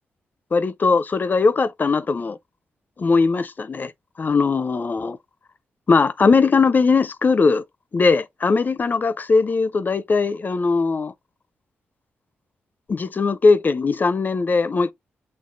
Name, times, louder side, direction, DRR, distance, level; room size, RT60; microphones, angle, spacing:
voice 1, 0.5-2.4 3.0-3.9 4.2-5.2 5.9-7.6 7.9-11.1 12.9-14.9, left 4 dB, 45° left, 0.4 m, -19 dB
6.4 x 2.8 x 2.5 m
supercardioid pair, 55°, 5 cm